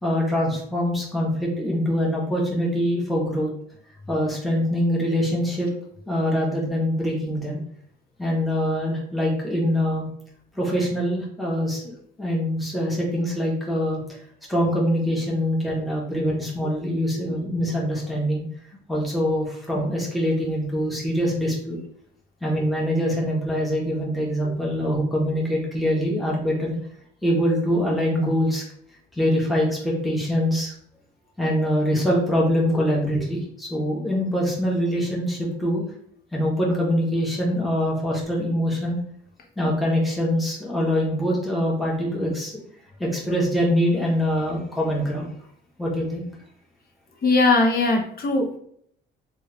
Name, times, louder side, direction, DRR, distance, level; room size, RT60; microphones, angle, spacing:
voice 1, 0.0-3.5 4.1-5.7 6.1-7.6 8.2-10.1 10.5-11.9 12.2-14.2 14.5-18.4 18.9-21.8 22.4-26.8 27.2-28.6 29.1-30.7 31.4-35.8 36.3-39.0 39.6-42.5 43.0-45.3 45.8-46.3, equal, ahead, -4 dB, 1.1 m, -24 dB
voice 2, 47.2-48.6, left 3 dB, 50° left, 1 dB, 0.9 m, -20 dB
3.2 x 2.5 x 3.3 m, 0.66 s
cardioid pair, 90°, 20 cm